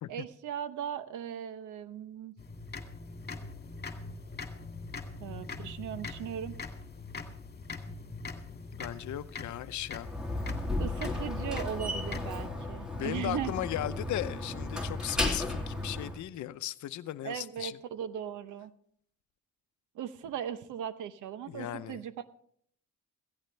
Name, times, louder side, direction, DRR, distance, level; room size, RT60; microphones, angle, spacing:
voice 1, 0.1-2.3 5.2-6.6 10.8-13.6 17.2-18.7 19.9-22.3, right 9 dB, 85° right, 0.9 m, -38 dB
sound 1, 2.4-12.5, left 4 dB, 35° left, 2.2 m, -43 dB
voice 2, 8.8-10.1 12.9-17.8 21.5-22.1, left 12 dB, 70° left, 0.7 m, -37 dB
Slam, 10.0-16.2, left 2 dB, ahead, 2.8 m, -34 dB
16.0 x 15.5 x 3.3 m
cardioid pair, 90°, 30 cm